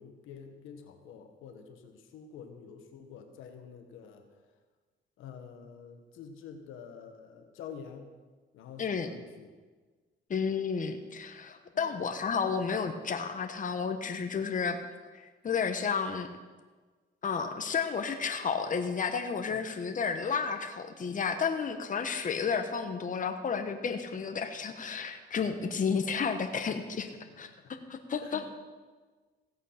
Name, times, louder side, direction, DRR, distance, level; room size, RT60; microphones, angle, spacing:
voice 1, 0.0-4.3 5.2-8.1 8.5-9.5 11.7-12.0 19.5-19.6 27.3-27.4 27.6-27.9 28.2-28.5, left 7 dB, 90° left, 6 dB, 1.4 m, -48 dB
voice 2, 10.3-14.8 15.1-16.3 17.2-27.1 27.4-27.5 27.9-28.5, left 6 dB, 40° left, 7 dB, 1.2 m, -32 dB
16.0 x 8.2 x 5.8 m, 1.4 s
cardioid pair, 90°, 20 cm